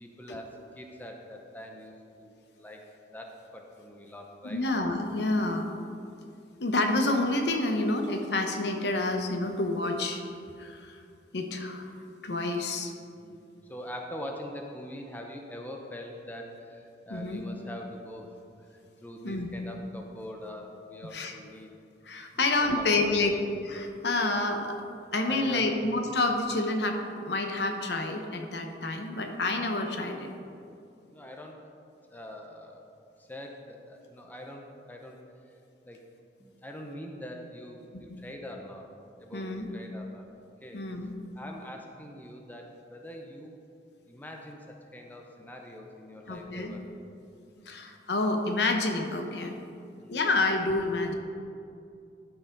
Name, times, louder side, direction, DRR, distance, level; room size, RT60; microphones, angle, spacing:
voice 1, 0.0-4.6 13.2-18.3 18.6-18.7 19.0-21.7 22.3-23.3 25.3-25.8 31.1-31.6 32.1-32.9 33.2-35.2 35.9-36.0 36.4-38.9 39.2-40.3 40.6-40.8 41.4-43.6 44.0-46.8 47.5-47.7 50.0-50.2, left 1 dB, 10° left, 1 dB, 0.7 m, -43 dB
voice 2, 4.4-5.7 6.6-10.2 10.6-11.0 11.3-11.9 12.2-12.9 17.1-17.4 19.2-19.5 21.1-21.3 22.1-23.3 23.6-24.7 25.1-30.3 37.9-38.0 39.3-39.7 40.7-41.1 46.3-46.8 47.7-49.6 50.1-51.1, left 2 dB, 75° left, 4 dB, 0.9 m, -28 dB
12.0 x 4.9 x 5.3 m, 2.5 s
head